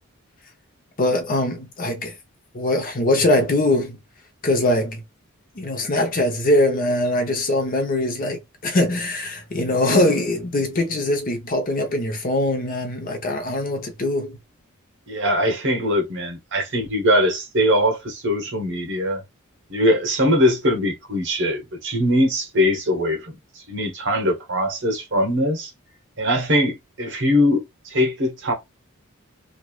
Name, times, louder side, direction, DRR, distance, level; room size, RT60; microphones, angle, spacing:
voice 1, 1.0-2.1 2.5-4.0 4.4-5.0 5.5-14.4, left 1 dB, 45° left, 0.8 m, -22 dB
voice 2, 15.1-19.2 19.7-23.4 23.7-25.7 26.2-28.5, equal, 60° right, 1.0 m, -21 dB
3.2 x 2.5 x 2.3 m
head